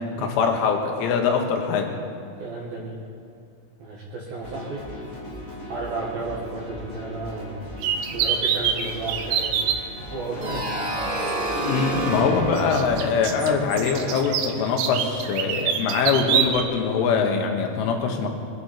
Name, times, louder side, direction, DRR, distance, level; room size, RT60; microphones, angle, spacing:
voice 1, 0.2-2.0 10.4-10.5 11.6-18.3, left 5 dB, 80° left, 3 dB, 3.9 m, -23 dB
voice 2, 2.4-3.0 3.8-4.9 5.6-9.6 10.1-11.3, right 2 dB, 60° right, -5 dB, 3.0 m, -33 dB
sound 1, 4.4-13.0, left 1 dB, 25° left, 1.3 m, -38 dB
sound 2, 7.8-9.8 11.2-11.3 12.6-16.6, right 8 dB, 80° right, 2.5 m, -25 dB
sound 3, 10.4-15.1, right 2 dB, 35° right, 3.3 m, -29 dB
22.5 x 12.5 x 4.4 m, 2.6 s
omnidirectional pair, 5.7 m